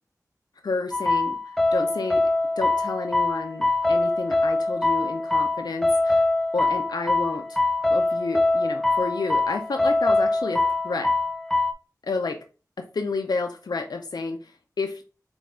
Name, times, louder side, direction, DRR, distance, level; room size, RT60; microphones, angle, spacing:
voice 1, 0.6-2.3 2.6-6.3 6.5-7.6 7.9-11.1 12.0-12.4 12.8-15.0, left 3 dB, 75° left, 4 dB, 0.4 m, -30 dB
sound 1, 0.9-11.7, left 2 dB, 5° left, 0.5 m, -23 dB
4.3 x 2.3 x 4.2 m, 0.35 s
wide cardioid pair, 45°, 7 cm